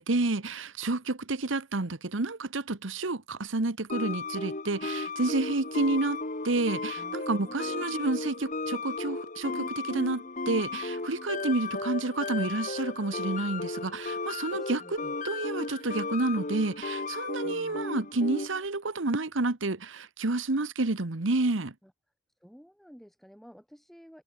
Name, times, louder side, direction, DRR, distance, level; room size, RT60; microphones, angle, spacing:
voice 1, 0.0-21.7, right 2 dB, 75° right, 1.3 m, -30 dB
sound 1, 3.9-18.7, left 3 dB, 40° left, 2.3 m, -35 dB
voice 2, 7.0-8.0 14.5-15.2 17.4-17.9 21.8-21.9 22.4-24.2, equal, ahead, 5.0 m, -52 dB
head